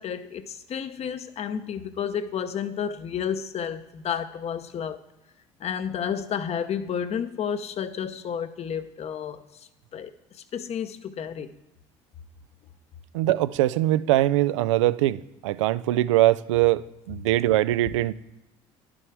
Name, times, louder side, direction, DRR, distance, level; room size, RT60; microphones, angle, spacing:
voice 1, 0.0-5.0 5.6-11.5, left 8 dB, 45° left, 0.8 m, -31 dB
voice 2, 13.1-16.8 17.1-18.1, right 15 dB, 85° right, 0.4 m, -22 dB
11.0 x 6.1 x 4.7 m
hypercardioid pair, 70°, 15 cm